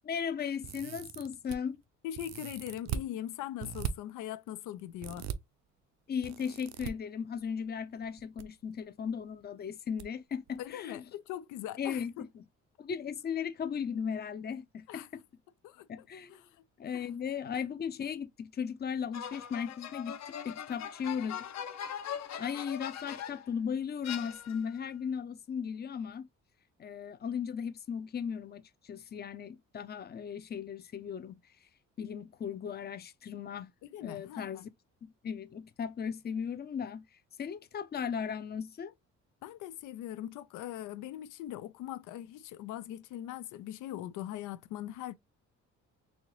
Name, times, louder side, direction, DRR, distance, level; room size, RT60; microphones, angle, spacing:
voice 1, 0.0-1.8 6.1-11.0 11.8-12.4 12.8-15.2 15.9-16.4 16.8-20.2 20.4-21.4 22.4-26.3 26.8-31.4 32.0-33.7 34.0-34.7 35.0-37.1 37.4-38.9, left 7 dB, 35° left, 0.6 m, -37 dB
sound 1, 0.6-1.6 2.1-3.1 3.6-3.9 5.0-5.4 6.2-6.9 8.0-8.4 8.7-8.8 10.0-10.1 10.5-10.6, right 8 dB, 65° right, 0.6 m, -39 dB
voice 2, 2.0-5.3 10.6-12.1 14.9-15.1 15.6-16.5 16.9-17.0 33.8-34.7 39.4-45.1, left 12 dB, 85° left, 0.5 m, -41 dB
sound 2, 19.1-23.5 24.0-24.8, left 9 dB, 60° left, 0.8 m, -41 dB
4.3 x 2.7 x 3.0 m
cardioid pair, 90°, 30 cm